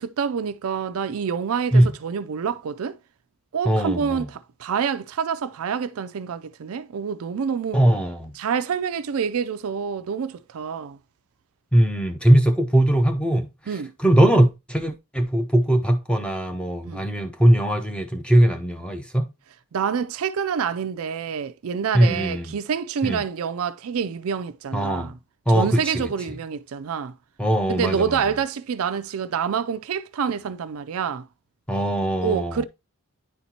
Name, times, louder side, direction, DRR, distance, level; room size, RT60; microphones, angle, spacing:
voice 1, 0.0-3.0 3.5-7.8 8.4-11.0 13.7-13.9 16.8-17.0 19.7-25.1 25.5-27.2 27.7-31.3 32.2-32.6, right 7 dB, 65° right, 0.4 m, -27 dB
voice 2, 3.6-4.3 7.7-8.3 11.7-13.5 14.0-19.3 21.9-22.5 23.0-23.2 24.7-25.1 25.5-25.8 27.4-28.2 31.7-32.6, right 1 dB, 5° left, 0.7 m, -20 dB
9.8 x 4.3 x 2.8 m
head